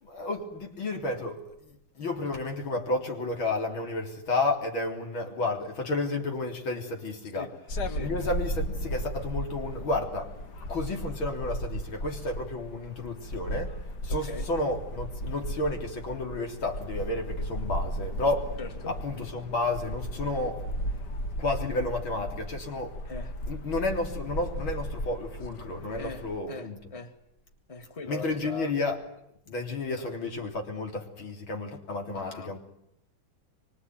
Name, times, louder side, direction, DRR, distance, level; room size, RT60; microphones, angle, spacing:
voice 1, 0.0-7.5 8.0-10.3 10.7-13.8 14.0-18.6 18.9-20.6 21.4-22.9 23.5-26.8 28.1-29.0 29.5-32.6, left 2 dB, 80° left, 3 dB, 4.3 m, -31 dB
sound 1, 7.7-26.4, equal, 55° left, 2.0 m, -35 dB
voice 2, 14.1-14.5 18.6-19.0 23.1-23.4 25.9-27.1 27.7-28.7 30.0-30.1 32.1-32.6, left 3 dB, 15° left, 6 dB, 2.0 m, -41 dB
25.0 x 24.5 x 9.5 m, 0.78 s
omnidirectional pair, 2.2 m